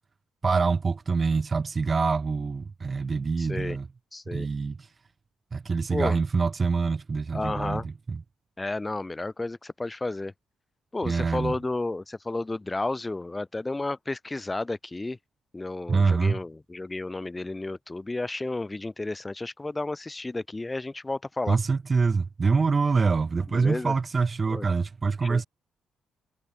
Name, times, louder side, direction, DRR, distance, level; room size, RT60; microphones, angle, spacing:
voice 1, 0.4-3.9 4.3-4.8 5.5-8.2 11.0-11.5 15.9-16.4 21.5-25.5, right 4 dB, 35° right, 2.8 m, -25 dB
voice 2, 3.4-3.8 4.1-4.5 5.9-6.2 7.3-7.9 8.6-10.3 10.9-15.2 15.5-21.6 23.5-23.9 24.5-24.7 25.2-25.5, left 2 dB, 15° left, 5.1 m, -32 dB
cardioid pair, 90°, 0 cm